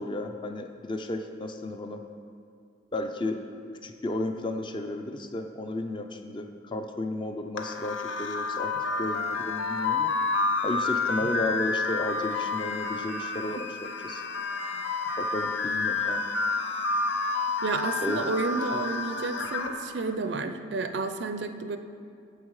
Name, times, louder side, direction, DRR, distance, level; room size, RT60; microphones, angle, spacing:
voice 1, 0.0-2.0 2.9-3.4 3.8-10.1 10.6-13.7 14.0-14.2 15.2-16.2 18.0-18.2, left 2 dB, 25° left, 6 dB, 0.4 m, -33 dB
sound 1, 7.6-19.7, left 3 dB, 90° left, 0.8 m, -29 dB
voice 2, 17.6-21.8, right 3 dB, 70° right, 9 dB, 0.5 m, -31 dB
9.1 x 7.2 x 4.8 m, 2.4 s
head